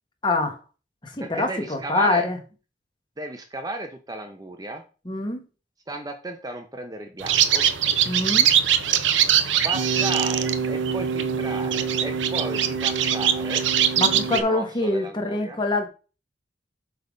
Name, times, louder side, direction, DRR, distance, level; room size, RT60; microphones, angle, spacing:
voice 1, 0.2-0.6 1.0-2.4 5.0-5.4 8.0-8.5 14.0-15.9, left 2 dB, 25° left, 1.3 m, -25 dB
voice 2, 1.2-2.3 3.2-4.8 5.9-7.7 8.9-9.0 9.6-13.6 14.3-15.6, right 2 dB, 20° right, 0.7 m, -34 dB
sound 1, 7.2-14.4, right 8 dB, 80° right, 0.7 m, -22 dB
8.1 x 3.5 x 5.2 m
head